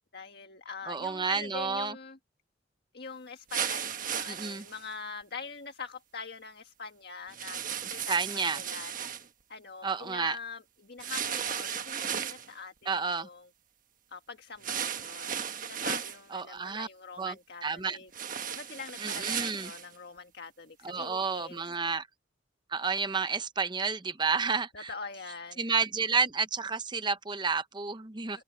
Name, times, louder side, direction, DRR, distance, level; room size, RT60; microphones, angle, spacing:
voice 1, 0.1-2.2 2.9-8.9 9.5-13.5 14.1-18.1 18.5-21.7 24.7-25.6 28.3-28.4, left 4 dB, 55° left, 1.7 m, -44 dB
voice 2, 0.9-2.0 4.3-4.6 8.1-8.6 9.8-10.4 12.9-13.3 16.3-16.9 17.2-17.3 17.6-18.0 19.0-19.7 20.8-22.1 22.7-24.9 25.6-28.4, right 5 dB, 25° right, 0.7 m, -30 dB
sound 1, 3.5-4.8 7.3-9.2 11.0-12.5 14.6-16.2 18.1-19.9, right 8 dB, 45° right, 1.4 m, -35 dB
head